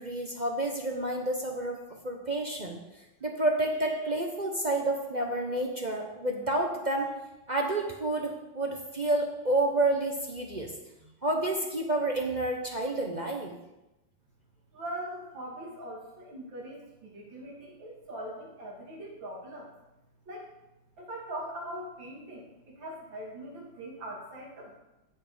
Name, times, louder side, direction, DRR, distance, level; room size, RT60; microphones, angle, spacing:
voice 1, 0.0-2.8 3.2-7.1 7.5-10.7 11.2-13.5, right 2 dB, 40° right, 1 dB, 0.6 m, -29 dB
voice 2, 14.7-19.7 20.3-20.5 21.0-24.8, right 1 dB, 70° right, -3 dB, 3.2 m, -41 dB
11.0 x 6.9 x 5.0 m, 0.98 s
omnidirectional pair, 2.2 m